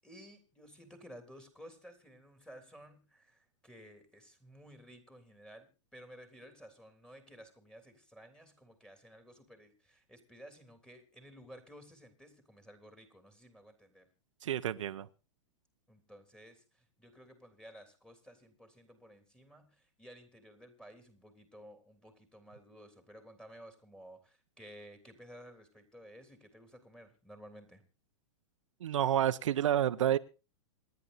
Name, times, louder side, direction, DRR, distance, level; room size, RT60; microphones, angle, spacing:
voice 1, 0.0-14.1 15.9-27.8, equal, 5° left, 7 dB, 3.3 m, -55 dB
voice 2, 14.4-15.1 28.8-30.2, right 11 dB, 80° right, 9 dB, 0.9 m, -29 dB
27.0 x 11.0 x 2.7 m, 0.32 s
hypercardioid pair, 135°, 16 cm